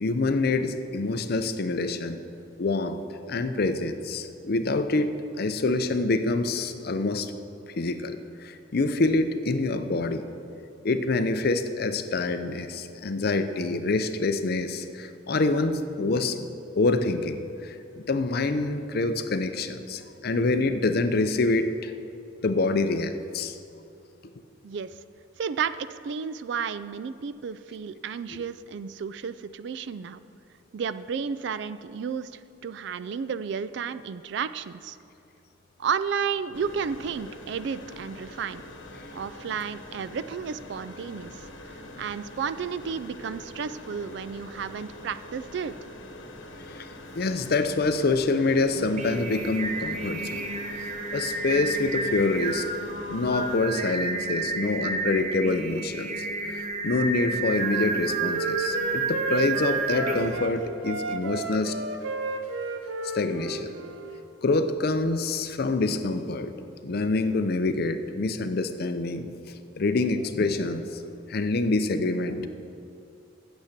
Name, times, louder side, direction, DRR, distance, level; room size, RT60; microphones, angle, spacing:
voice 1, 0.0-2.2 2.6-3.0 3.3-7.3 7.8-10.3 10.8-16.5 16.8-21.9 22.4-23.6 46.7-46.9 47.2-50.5 50.7-52.6 53.1-61.8 63.1-63.8 64.4-66.5 66.8-69.3 69.8-72.5, left 3 dB, 55° left, 9 dB, 0.5 m, -26 dB
voice 2, 24.6-24.9 25.4-30.2 30.7-35.0 35.8-38.6 39.1-41.4 42.0-45.7, right 6 dB, 65° right, 14 dB, 0.3 m, -32 dB
sound 1, 36.5-53.6, left 1 dB, 85° left, 1.2 m, -44 dB
Singing, 48.7-60.5, right 3 dB, 40° right, 0.7 m, -31 dB
Wind instrument woodwind instrument, 57.6-60.5 60.8-64.2, right 3 dB, 90° right, 0.7 m, -33 dB
9.1 x 7.1 x 6.6 m, 2.6 s
head